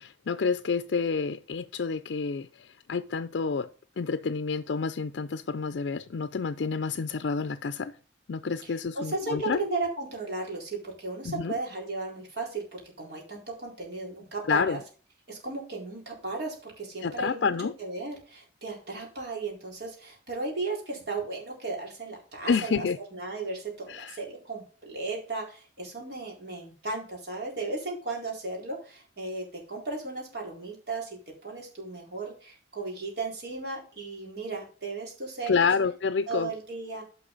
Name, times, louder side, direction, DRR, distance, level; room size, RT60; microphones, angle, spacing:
voice 1, 0.0-3.7 4.0-7.9 8.3-9.6 11.2-11.6 14.5-14.8 17.0-17.7 22.5-23.0 23.9-24.2 35.5-36.5, left 5 dB, 70° left, 0.4 m, -29 dB
voice 2, 8.9-14.8 15.3-17.5 17.8-22.8 23.1-31.1 31.4-35.7 36.3-37.0, right 3 dB, 60° right, 4.0 m, -35 dB
10.0 x 5.7 x 3.9 m
head